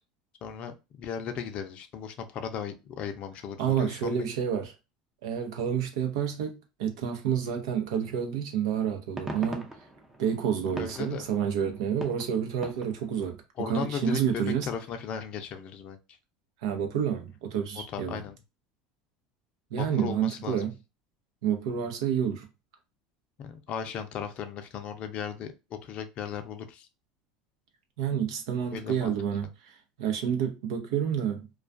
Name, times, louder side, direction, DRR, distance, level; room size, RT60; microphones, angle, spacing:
voice 1, 0.4-4.3 10.7-11.2 13.6-16.0 17.9-18.4 19.8-20.7 23.4-26.9 28.7-29.1, left 7 dB, 45° left, 0.5 m, -36 dB
voice 2, 3.6-4.7 5.2-6.5 6.8-9.7 10.2-13.4 13.7-14.7 16.6-18.2 19.7-20.7 21.4-22.5 28.0-29.5 30.0-31.4, right 8 dB, 80° right, 0.7 m, -29 dB
sound 1, 9.1-13.3, right 2 dB, 20° right, 0.5 m, -42 dB
2.3 x 2.3 x 2.5 m
supercardioid pair, 110°, 3 cm